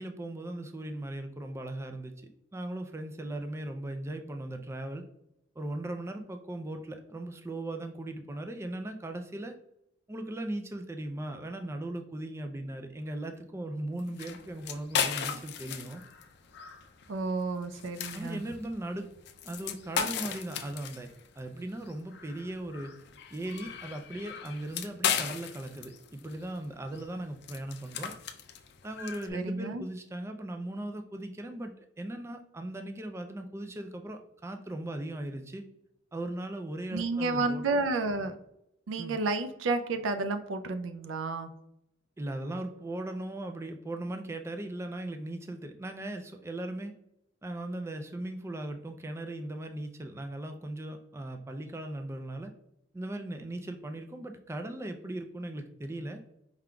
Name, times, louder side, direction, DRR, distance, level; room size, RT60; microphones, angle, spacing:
voice 1, 0.0-2.1 2.5-5.0 5.6-9.5 10.1-16.0 18.1-19.1 19.4-21.1 21.4-22.9 23.3-28.1 28.8-35.6 36.1-37.6 39.0-39.2 42.2-46.9 47.4-52.5 52.9-56.2, right 1 dB, 15° right, 5 dB, 0.3 m, -38 dB
sound 1, 14.0-29.3, left 8 dB, 60° left, 0.4 m, -37 dB
voice 2, 17.1-18.4 29.3-29.8 36.9-38.4 38.9-41.5, right 3 dB, 80° right, 9 dB, 0.4 m, -31 dB
4.8 x 3.6 x 2.2 m, 0.79 s
head